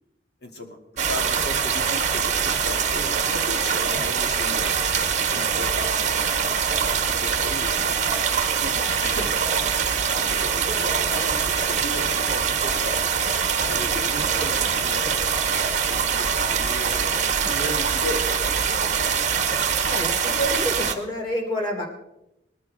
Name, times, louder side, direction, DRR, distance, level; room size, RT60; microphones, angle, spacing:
voice 1, 0.4-4.8 5.3-6.6 7.0-8.0 8.6-9.4 10.2-13.1 13.6-15.1 15.9-18.3 18.8-19.5, left 1 dB, 60° left, 3 dB, 2.3 m, -36 dB
sound 1, 1.0-20.9, right 7 dB, 40° right, 1.1 m, -23 dB
sound 2, 4.0-19.1, equal, 85° left, 4.4 m, -43 dB
voice 2, 19.9-21.8, equal, 25° left, -1 dB, 3.5 m, -28 dB
20.0 x 14.0 x 3.4 m, 0.87 s
head